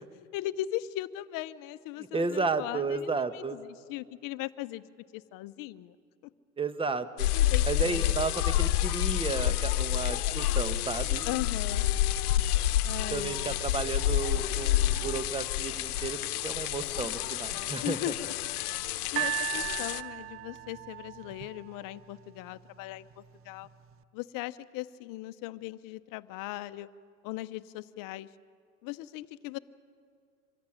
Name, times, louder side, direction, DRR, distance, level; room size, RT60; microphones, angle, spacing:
voice 1, 0.3-4.8 5.1-5.9 7.3-8.0 11.3-11.9 12.8-13.6 17.8-18.3 19.1-23.7 24.1-26.9 27.2-28.3 28.8-29.6, left 15 dB, 45° left, 14 dB, 0.9 m, -38 dB
voice 2, 2.0-3.6 6.6-7.3 7.6-11.3 13.1-18.1, right 4 dB, 10° right, 11 dB, 1.2 m, -33 dB
sound 1, 7.2-20.0, left 13 dB, 80° left, 1.0 m, -29 dB
sound 2, 10.8-21.2, right 4 dB, 65° right, 4.0 m, -49 dB
sound 3, 19.2-22.3 23.1-23.2, right 17 dB, 30° right, 0.7 m, -36 dB
25.5 x 14.5 x 10.0 m, 2.2 s
hypercardioid pair, 105°, 45 cm